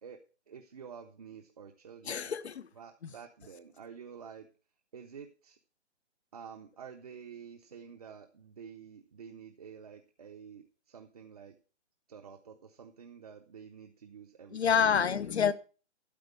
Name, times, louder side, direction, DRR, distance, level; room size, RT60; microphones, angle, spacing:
voice 1, 0.5-2.3 2.7-4.5 4.9-5.6 6.3-11.6 12.1-15.1, right 7 dB, 35° right, 0.7 m, -49 dB
voice 2, 2.1-2.7 14.5-15.5, left 7 dB, 65° left, 0.9 m, -27 dB
12.0 x 4.4 x 8.3 m
hypercardioid pair, 170°, 35 cm